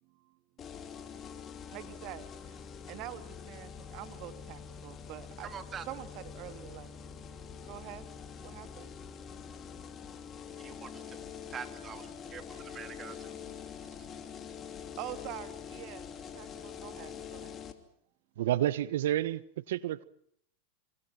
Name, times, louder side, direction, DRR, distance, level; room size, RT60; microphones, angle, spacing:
voice 1, 0.0-0.4 1.5-5.5 5.9-7.2 7.6-8.1 8.4-11.5 12.2-12.7 13.1-13.3 13.8-14.2 14.8-17.6, right 13 dB, 50° right, 2.3 m, -47 dB
sound 1, 0.6-17.7, left 7 dB, 30° left, 2.8 m, -45 dB
voice 2, 5.4-5.9 10.6-11.2 11.5-13.5, right 8 dB, 30° right, 2.3 m, -45 dB
voice 3, 18.4-20.0, right 12 dB, 75° right, 1.2 m, -30 dB
26.0 x 26.0 x 6.1 m
hypercardioid pair, 115°, 0 cm